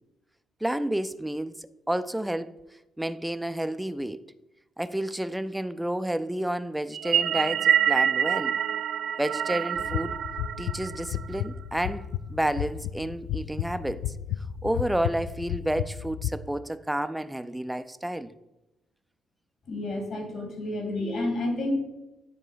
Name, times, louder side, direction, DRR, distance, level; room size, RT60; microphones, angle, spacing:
voice 1, 0.6-2.5 3.0-4.2 4.8-8.6 9.2-10.1 10.6-14.1 14.6-18.3, right 1 dB, 5° right, 0.4 m, -30 dB
sound 1, 6.9-11.5, right 9 dB, 70° right, 0.3 m, -26 dB
sound 2, 9.8-16.3, left 11 dB, 90° left, 0.3 m, -33 dB
voice 2, 19.7-21.7, left 1 dB, 60° left, 2.6 m, -30 dB
9.9 x 3.8 x 5.0 m
cardioid pair, 90°, 0 cm